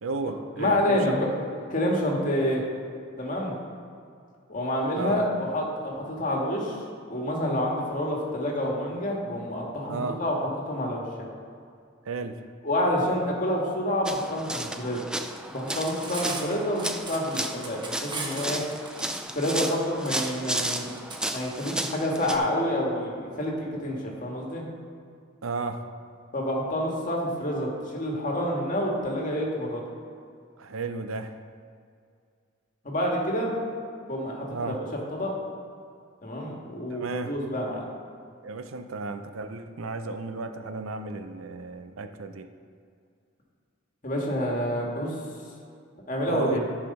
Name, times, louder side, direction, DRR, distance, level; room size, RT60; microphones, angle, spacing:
voice 1, 0.0-1.5 5.0-5.3 9.9-10.2 12.0-12.4 25.4-25.8 30.6-31.4 34.5-34.8 36.9-37.3 38.4-42.5 46.3-46.6, right 4 dB, 80° right, 8 dB, 0.6 m, -33 dB
voice 2, 0.6-1.3 1.7-2.6 3.2-3.5 4.5-6.8 7.1-11.3 12.6-15.0 15.5-18.6 19.3-20.9 21.3-24.6 26.3-29.8 32.8-33.5 34.1-34.7 35.1-35.3 36.2-37.8 44.0-45.2 46.1-46.6, left 1 dB, 40° left, -1 dB, 1.7 m, -28 dB
sound 1, 14.1-22.4, right 1 dB, 5° right, 0.4 m, -33 dB
Cutlery silverware, 15.6-21.2, right 3 dB, 20° right, 1.1 m, -38 dB
13.5 x 4.9 x 5.4 m, 2.3 s
head